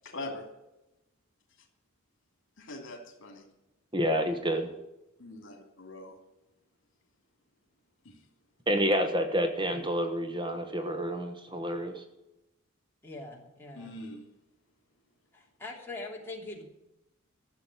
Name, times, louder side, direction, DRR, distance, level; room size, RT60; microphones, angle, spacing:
voice 1, 0.0-0.4 2.6-3.4 5.2-6.2 8.0-8.2 13.7-14.2, left 2 dB, 60° left, 4 dB, 2.9 m, -42 dB
voice 2, 3.9-4.7 8.7-12.0, equal, 20° right, 6 dB, 1.2 m, -29 dB
voice 3, 13.0-13.9 15.3-16.6, left 2 dB, 10° left, -2 dB, 3.0 m, -42 dB
14.5 x 7.4 x 9.0 m, 0.94 s
head